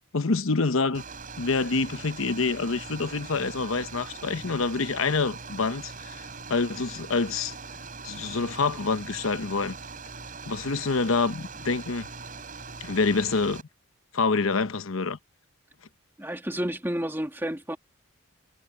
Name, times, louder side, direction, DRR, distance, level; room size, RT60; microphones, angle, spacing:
voice 1, 0.1-1.0 1.4-7.5 8.0-9.7 10.5-12.1 12.8-13.6 14.1-15.2, left 4 dB, 75° left, 0.9 m, -27 dB
sound 1, 0.9-13.6, right 4 dB, 40° right, 5.3 m, -41 dB
voice 2, 16.2-17.8, equal, 10° right, 1.8 m, -30 dB
head